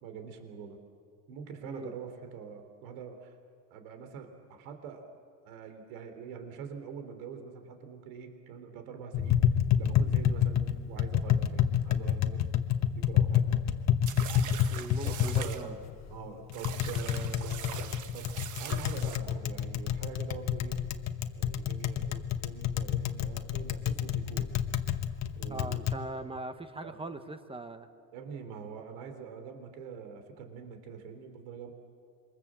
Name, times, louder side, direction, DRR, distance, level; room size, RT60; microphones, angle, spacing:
voice 1, 0.0-0.8 1.3-3.3 3.7-5.0 5.4-9.4 9.8-12.6 12.9-13.5 15.0-15.8 16.1-20.8 21.4-24.5 25.4-25.8 26.8-27.0 28.1-31.7, right 6 dB, 85° right, 6 dB, 3.6 m, -44 dB
voice 2, 1.6-1.9 14.7-15.7 25.5-27.9, right 2 dB, 15° right, 9 dB, 1.1 m, -40 dB
Tap, 9.1-26.0, left 9 dB, 40° left, 1.3 m, -29 dB
sound 1, 14.1-15.6 16.5-19.2, right 9 dB, 45° right, 1.5 m, -42 dB
27.5 x 24.0 x 7.6 m, 2.2 s
cardioid pair, 135°, 41 cm